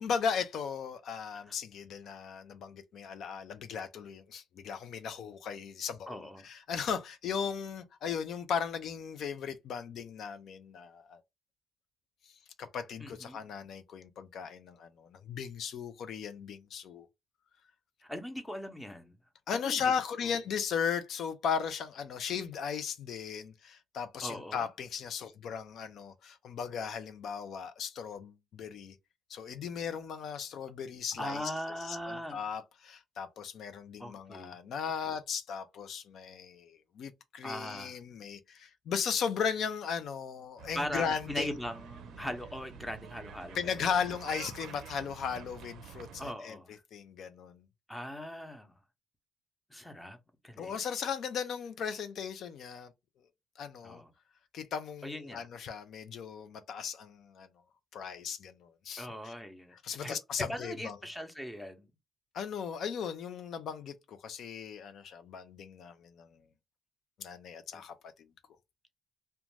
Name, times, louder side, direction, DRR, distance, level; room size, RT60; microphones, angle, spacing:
voice 1, 0.0-11.2 12.6-17.1 19.5-28.9 29.3-31.5 31.8-41.5 43.5-46.6 46.9-47.6 50.6-52.9 53.6-54.0 54.5-57.5 57.9-59.3 59.8-61.0 62.3-66.3 67.2-67.9, left 7 dB, 70° left, 0.4 m, -37 dB
voice 2, 6.1-6.5 13.0-13.4 18.0-19.1 19.5-19.9 24.2-24.7 31.2-32.4 34.0-34.6 37.4-37.9 40.7-43.9 46.2-46.7 47.9-48.7 49.7-50.2 50.4-50.7 53.8-54.1 55.0-55.5 59.0-59.7 60.0-60.2 60.5-61.9 67.7-67.8, equal, 5° left, 0.7 m, -40 dB
sound 1, 40.6-46.3, right 8 dB, 85° right, 0.4 m, -48 dB
2.4 x 2.2 x 3.1 m
cardioid pair, 90°, 0 cm